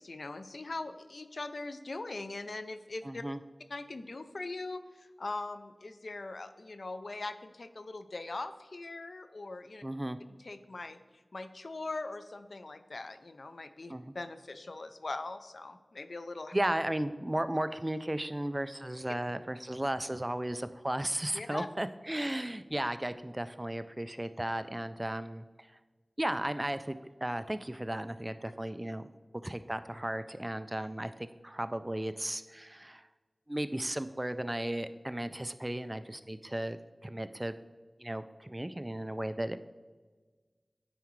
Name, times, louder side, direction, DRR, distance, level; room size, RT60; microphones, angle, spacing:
voice 1, 0.0-3.2 3.7-9.8 10.4-11.0 11.3-16.5 21.3-21.7, left 2 dB, 75° left, 10 dB, 0.4 m, -41 dB
voice 2, 3.0-3.4 9.8-10.2 13.9-14.1 16.5-25.5 26.2-29.1 29.4-33.0 33.5-37.5 38.0-39.6, right 1 dB, 20° right, 12 dB, 0.3 m, -35 dB
9.1 x 4.8 x 3.1 m, 1.4 s
wide cardioid pair, 55°, 0 cm